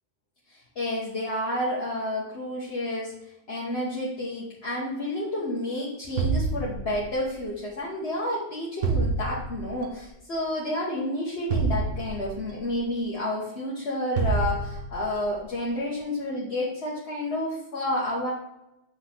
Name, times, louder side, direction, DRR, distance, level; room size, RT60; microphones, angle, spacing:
voice 1, 0.5-3.1 3.5-18.3, left 1 dB, 55° left, -6 dB, 1.7 m, -30 dB
sound 1, 6.2-7.3 8.8-9.8 11.5-12.6 14.2-15.1, right 4 dB, 85° right, 1.3 m, -27 dB
7.9 x 6.4 x 3.5 m, 0.93 s
omnidirectional pair, 1.3 m